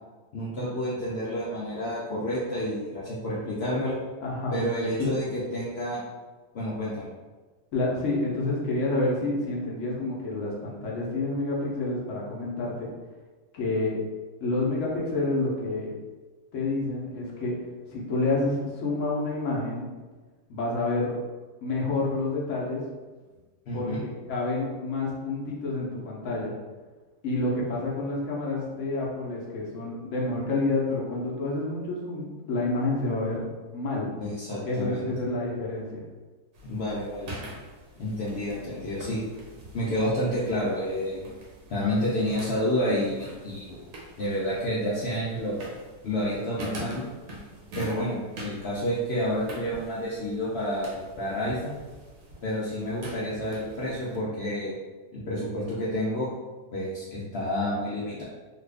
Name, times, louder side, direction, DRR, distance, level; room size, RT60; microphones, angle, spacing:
voice 1, 0.3-4.0 4.5-6.0 6.5-7.1 23.7-24.0 34.2-35.1 36.6-37.3 38.0-39.2 39.7-41.2 41.7-43.7 44.2-45.6 46.0-47.0 47.7-51.8 52.4-54.7 55.1-56.3 56.7-58.2, equal, 80° left, -7 dB, 0.5 m, -29 dB
voice 2, 4.2-4.6 5.0-5.1 7.7-12.9 13.5-14.0 14.4-15.9 16.5-17.6 17.9-19.9 20.5-21.2 21.6-22.8 23.7-26.5 27.2-33.4 33.7-34.1 34.6-36.0, left 2 dB, 60° left, -4 dB, 0.9 m, -28 dB
sound 1, 36.5-54.2, right 1 dB, 65° right, 1.0 m, -44 dB
2.9 x 2.4 x 3.3 m, 1.3 s
omnidirectional pair, 1.8 m